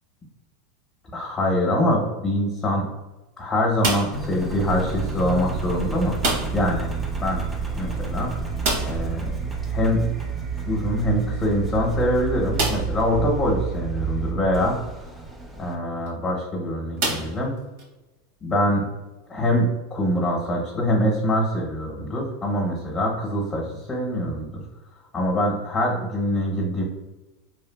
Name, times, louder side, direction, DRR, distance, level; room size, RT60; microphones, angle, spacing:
voice 1, 1.1-2.9 3.4-6.9 7.2-7.5 7.8-8.3 8.9-9.4 9.7-10.1 10.6-14.8 15.6-17.5 18.4-18.9 19.3-24.6 25.1-26.8, left 1 dB, 25° left, -2 dB, 0.7 m, -24 dB
sound 1, 3.8-4.3 6.2-6.7 7.0-7.1 7.4-7.5 8.6-9.1 10.9-11.0 11.6-11.7 12.5-13.0 13.8-13.9 15.9-16.1 17.0-17.9, right 2 dB, 70° right, 0.8 m, -27 dB
Engine, 4.1-15.8, right 5 dB, 15° right, 0.4 m, -30 dB
2.8 x 2.4 x 2.2 m, 1.1 s
supercardioid pair, 125°, 0 cm